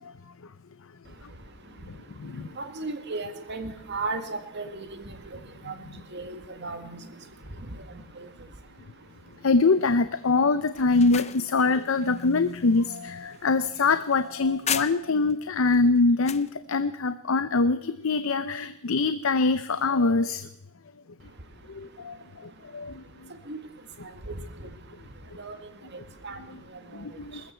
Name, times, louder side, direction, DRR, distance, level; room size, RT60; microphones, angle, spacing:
voice 1, 2.6-5.0 5.7-5.8 6.1-7.0 23.5-23.6 24.3-24.4 25.4-25.6 26.2-26.4, right 3 dB, 55° right, 8 dB, 1.8 m, -34 dB
voice 2, 9.4-20.5 21.7-22.2 22.7-22.9 26.9-27.4, left 3 dB, 70° left, 12 dB, 0.6 m, -24 dB
sound 1, 10.7-15.3 15.7-16.5, left 9 dB, 30° left, 0.6 m, -36 dB
21.0 x 14.0 x 4.5 m, 0.87 s
head